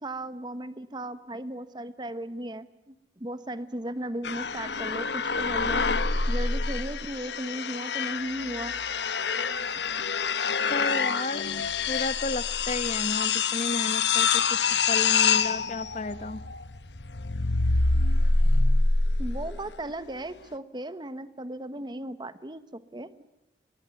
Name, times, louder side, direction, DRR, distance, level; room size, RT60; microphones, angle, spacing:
voice 1, 0.0-5.9 6.3-8.8 19.2-23.1, right 1 dB, 25° right, 13 dB, 1.2 m, -36 dB
sound 1, 4.2-19.7, left 4 dB, 80° left, 1.3 m, -26 dB
voice 2, 10.7-11.5 11.9-16.4, left 2 dB, 40° left, 14 dB, 1.1 m, -33 dB
23.5 x 19.5 x 9.5 m, 0.92 s
head